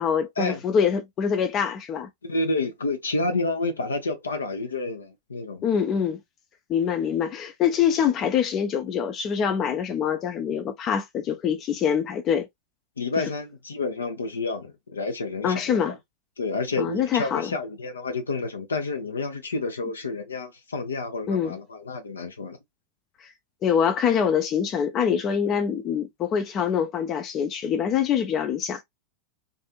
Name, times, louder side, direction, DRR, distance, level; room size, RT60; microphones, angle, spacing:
voice 1, 0.0-2.1 5.6-6.2 6.7-12.5 13.2-13.3 15.4-16.0 16.8-17.5 21.3-21.6 23.6-28.8, left 7 dB, 30° left, 0.5 m, -24 dB
voice 2, 2.2-5.6 13.0-15.9 16.4-22.6, left 3 dB, 70° left, 0.8 m, -29 dB
2.6 x 2.5 x 2.4 m
figure-of-eight pair, 90°, 0 cm